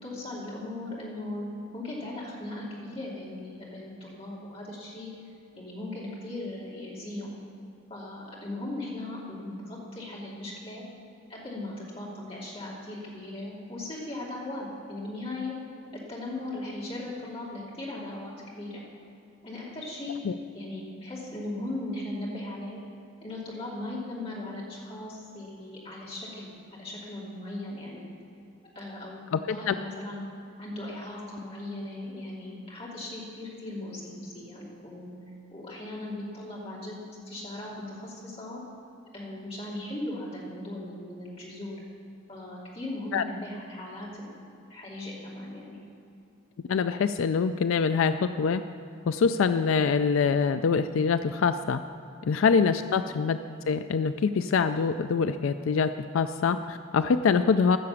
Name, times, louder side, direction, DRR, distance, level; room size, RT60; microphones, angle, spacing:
voice 1, 0.0-1.5 1.7-5.1 5.6-7.3 7.9-10.8 11.3-15.5 16.1-18.8 19.4-20.2 20.5-22.8 23.2-28.0 28.7-30.2 30.6-35.2 35.5-38.6 39.1-41.8 42.3-44.3 44.7-45.8 52.5-52.7, left 1 dB, 30° left, -5 dB, 2.9 m, -38 dB
voice 2, 29.3-29.7 43.1-43.2 46.7-48.6 49.1-51.8 52.2-53.4 53.7-57.8, left 5 dB, 85° left, 11 dB, 0.4 m, -24 dB
14.5 x 6.8 x 7.1 m, 2.7 s
head